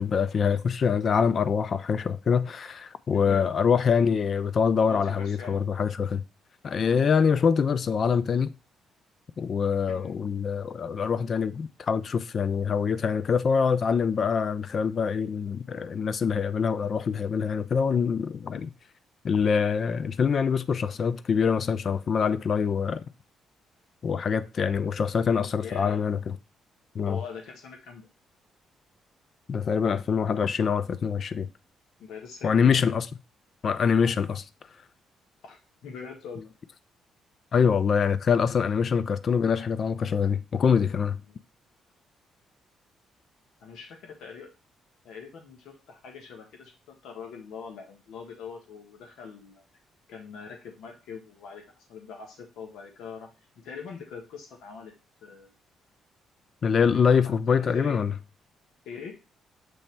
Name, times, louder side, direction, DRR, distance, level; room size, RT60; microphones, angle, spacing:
voice 1, 0.0-6.2 6.6-8.5 9.4-18.7 19.2-23.0 24.0-26.2 26.9-27.2 29.5-31.5 32.4-33.1 33.6-34.4 37.5-41.2 56.6-58.1, left 6 dB, 50° left, 0.5 m, -24 dB
voice 2, 3.1-3.5 4.9-5.7 9.9-10.2 25.6-26.0 27.0-28.1 32.0-32.9 35.4-36.5 41.3-41.4 43.6-44.5 45.0-49.6 50.1-54.9 55.2-55.5 56.9-58.0 58.8-59.1, left 6 dB, 80° left, 1.4 m, -43 dB
7.7 x 3.2 x 4.4 m
cardioid pair, 90°, 0 cm